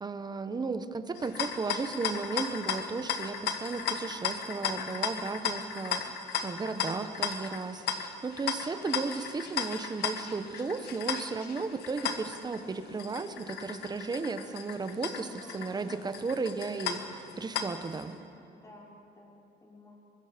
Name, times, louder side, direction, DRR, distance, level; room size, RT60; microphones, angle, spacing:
voice 1, 0.0-6.1 6.4-15.3 15.5-18.1, right 4 dB, 25° right, 10 dB, 1.1 m, -35 dB
sound 1, 1.1-18.0, left 7 dB, 75° left, 1.4 m, -36 dB
voice 2, 15.2-16.1 18.4-20.0, left 1 dB, 20° left, -3 dB, 5.2 m, -52 dB
24.0 x 21.5 x 5.2 m, 2.8 s
cardioid pair, 110°, 17 cm